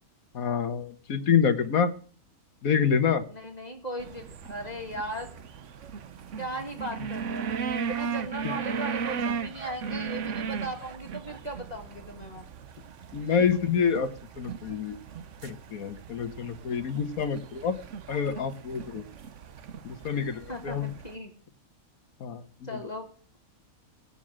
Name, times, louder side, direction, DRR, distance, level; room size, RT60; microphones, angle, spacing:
voice 1, 0.3-1.9 2.6-3.2 13.1-14.1 14.4-15.0 15.4-17.8 18.1-19.0 19.8-20.9 22.2-22.4, left 7 dB, 80° left, 10 dB, 1.6 m, -27 dB
voice 2, 3.3-5.3 6.4-12.5 20.5-21.3 22.6-23.4, right 1 dB, 30° left, 3 dB, 2.0 m, -37 dB
sound 1, 4.0-21.2, right 6 dB, 60° right, 1.1 m, -37 dB
17.5 x 7.0 x 7.5 m, 0.43 s
omnidirectional pair, 1.5 m